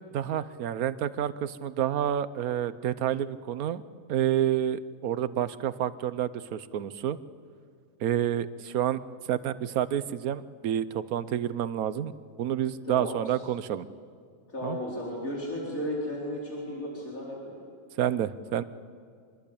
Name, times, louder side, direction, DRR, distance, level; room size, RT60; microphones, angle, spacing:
voice 1, 0.1-3.8 4.1-7.2 8.0-9.0 9.3-12.1 12.4-13.9 14.6-14.8 18.0-18.6, right 10 dB, 75° right, 14 dB, 1.3 m, -29 dB
voice 2, 12.8-13.2 14.5-17.6, left 1 dB, 65° left, -4 dB, 4.6 m, -34 dB
25.5 x 22.0 x 8.5 m, 2.2 s
omnidirectional pair, 1.5 m